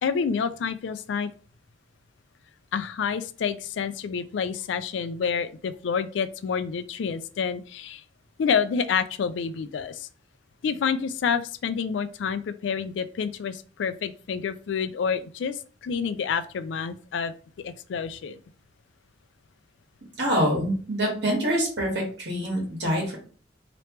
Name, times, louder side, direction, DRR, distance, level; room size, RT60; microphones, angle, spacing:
voice 1, 0.0-1.3 2.7-8.0 8.4-10.1 10.6-18.4, left 6 dB, 80° left, 13 dB, 0.3 m, -28 dB
voice 2, 20.2-23.2, equal, 65° right, -2 dB, 1.6 m, -25 dB
3.3 x 2.9 x 3.1 m, 0.41 s
head